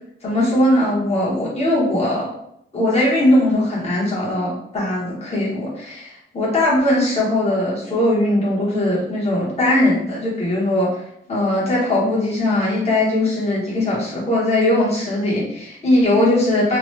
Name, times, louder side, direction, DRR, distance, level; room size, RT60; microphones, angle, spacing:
voice 1, 0.2-2.3 2.7-11.0 11.3-16.8, left 1 dB, 30° left, -7 dB, 1.0 m, -19 dB
2.9 x 2.2 x 3.1 m, 0.76 s
wide cardioid pair, 125°, 21 cm